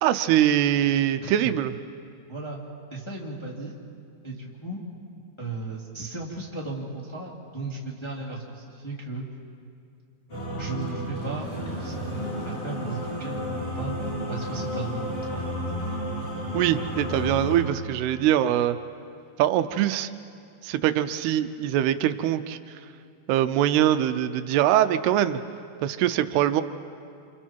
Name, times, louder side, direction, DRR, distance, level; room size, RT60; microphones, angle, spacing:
voice 1, 0.0-1.7 16.5-18.8 19.4-20.1 20.6-22.8 23.3-25.4 25.8-26.6, right 11 dB, 85° right, 11 dB, 2.7 m, -23 dB
voice 2, 2.3-2.6 2.9-3.8 4.2-4.8 5.4-9.3 10.6-14.0 14.3-15.5, right 3 dB, 10° left, -4 dB, 2.2 m, -35 dB
sound 1, 10.3-17.6, equal, 35° left, 9.0 m, -32 dB
29.0 x 27.5 x 4.6 m, 2.4 s
omnidirectional pair, 4.6 m